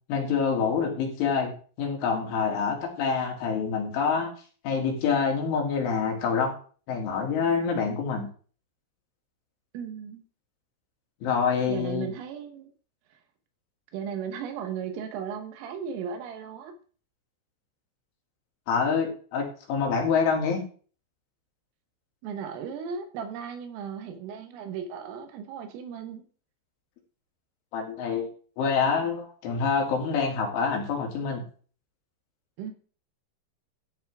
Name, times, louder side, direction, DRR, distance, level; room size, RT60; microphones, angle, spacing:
voice 1, 0.1-1.5 1.8-4.3 4.6-6.5 6.9-8.3 11.2-12.1 18.7-20.6 27.7-28.3 28.6-31.4, left 5 dB, 70° left, 0 dB, 4.8 m, -26 dB
voice 2, 9.7-10.2 11.6-12.7 13.9-16.7 22.2-26.3 32.6-32.7, right 7 dB, 80° right, 7 dB, 3.9 m, -36 dB
14.0 x 8.9 x 3.7 m, 0.42 s
omnidirectional pair, 5.9 m